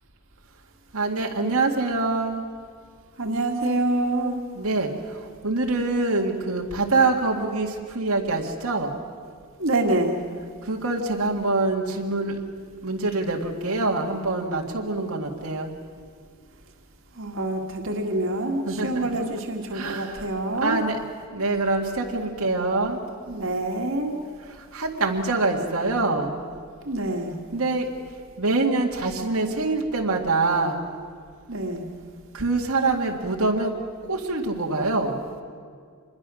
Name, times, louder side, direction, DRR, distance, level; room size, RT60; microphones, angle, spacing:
voice 1, 0.9-2.4 4.6-9.0 10.6-12.4 12.8-15.7 18.7-19.1 19.7-20.3 20.6-21.0 21.3-23.0 24.5-26.5 27.5-27.9 28.4-30.8 32.3-33.7 34.1-35.2, right 3 dB, 90° right, 0 dB, 2.0 m, -25 dB
voice 2, 3.2-4.4 9.6-10.2 17.2-20.8 23.3-24.2 26.8-27.3 31.5-31.8, right 2 dB, 65° right, 2 dB, 2.0 m, -26 dB
26.0 x 21.5 x 6.3 m, 2.1 s
head